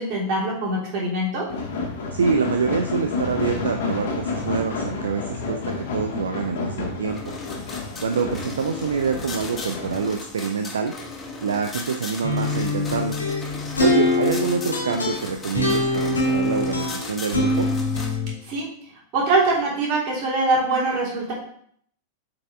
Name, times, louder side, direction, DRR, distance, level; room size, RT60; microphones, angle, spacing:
voice 1, 0.0-1.4 18.4-18.7 19.1-21.3, right 2 dB, 40° right, -4 dB, 3.0 m, -23 dB
sound 1, 1.5-10.0, left 4 dB, 55° left, 1.7 m, -30 dB
voice 2, 2.1-7.3 8.0-10.9 11.4-13.2 13.8-17.7, right 5 dB, 70° right, 5 dB, 0.5 m, -26 dB
sound 2, 7.1-18.2, left 3 dB, 15° left, 1.6 m, -37 dB
sound 3, 12.2-18.3, left 2 dB, 75° left, 2.1 m, -24 dB
7.5 x 4.9 x 3.6 m, 0.64 s
figure-of-eight pair, 90°, 0 cm